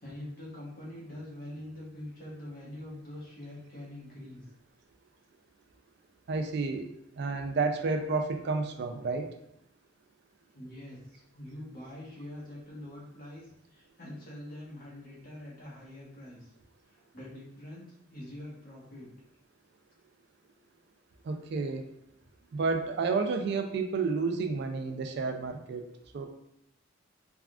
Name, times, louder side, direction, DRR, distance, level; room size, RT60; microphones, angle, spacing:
voice 1, 0.0-4.4 10.5-13.4 13.7-16.4 16.9-19.1, left 1 dB, 45° left, -5 dB, 1.0 m, -44 dB
voice 2, 6.3-6.8 7.2-9.3 21.2-21.8 22.5-25.8 26.1-26.3, right 4 dB, 55° right, 5 dB, 0.3 m, -30 dB
3.5 x 2.3 x 2.3 m, 0.76 s
head